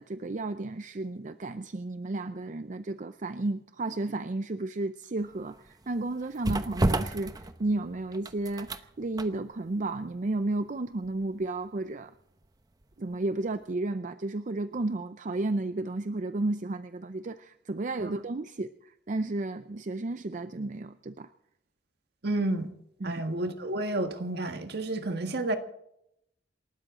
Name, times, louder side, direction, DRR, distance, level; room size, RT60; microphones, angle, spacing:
voice 1, 0.0-12.1 13.0-21.3 23.0-23.2, right 2 dB, 45° right, 0.5 m, -33 dB
sound 1, 5.2-13.1 13.5-13.6, right 1 dB, 20° right, 0.9 m, -34 dB
voice 2, 22.2-22.7 23.0-25.6, right 2 dB, 65° right, 1.7 m, -30 dB
28.0 x 13.0 x 3.8 m
head